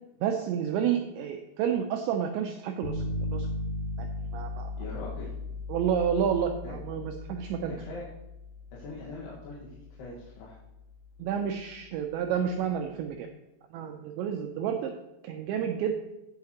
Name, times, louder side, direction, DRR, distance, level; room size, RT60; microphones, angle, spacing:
voice 1, 0.2-3.0 3.3-3.5 4.0-4.1 4.3-4.7 5.7-7.7 11.2-13.3 13.7-14.9 15.2-15.9, right 8 dB, 90° right, 4 dB, 2.5 m, -30 dB
sound 1, 2.8-12.7, left 2 dB, 80° left, 1.8 m, -38 dB
voice 2, 4.8-5.3 6.6-6.7 7.8-8.1 8.7-10.6, left 3 dB, 65° left, -7 dB, 3.2 m, -42 dB
17.0 x 5.7 x 2.9 m, 0.95 s
omnidirectional pair, 5.7 m